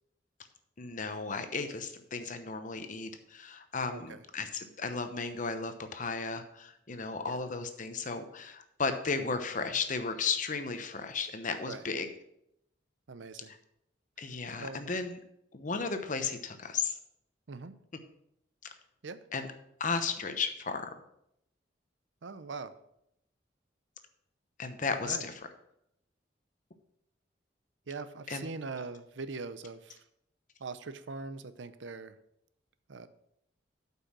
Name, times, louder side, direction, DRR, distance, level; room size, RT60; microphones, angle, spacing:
voice 1, 0.8-12.1 13.5-13.6 14.2-15.2 15.5-17.0 19.3-19.5 19.8-20.9 24.6-25.3 28.3-28.4, left 4 dB, 45° left, 8 dB, 0.9 m, -34 dB
voice 2, 3.9-4.2 7.3-7.4 11.7-11.8 13.1-13.5 14.6-14.8 17.5-17.7 19.0-19.2 22.2-22.7 25.0-25.3 27.9-30.0 30.6-32.2 32.9-33.1, right 4 dB, 85° right, 12 dB, 0.6 m, -41 dB
8.4 x 5.5 x 6.1 m, 0.76 s
head